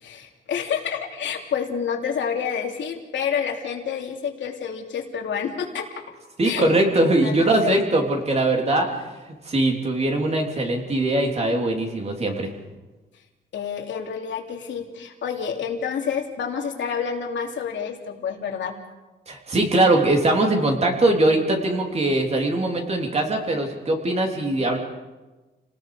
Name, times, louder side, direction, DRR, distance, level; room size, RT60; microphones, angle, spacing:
voice 1, 0.0-5.9 6.4-6.7 7.2-7.8 13.5-18.7, left 7 dB, 75° left, 2 dB, 3.0 m, -28 dB
voice 2, 6.4-9.0 9.4-12.5 19.3-24.8, right 2 dB, 35° right, 2 dB, 3.5 m, -21 dB
29.5 x 19.0 x 5.0 m, 1.2 s
wide cardioid pair, 140°, 19 cm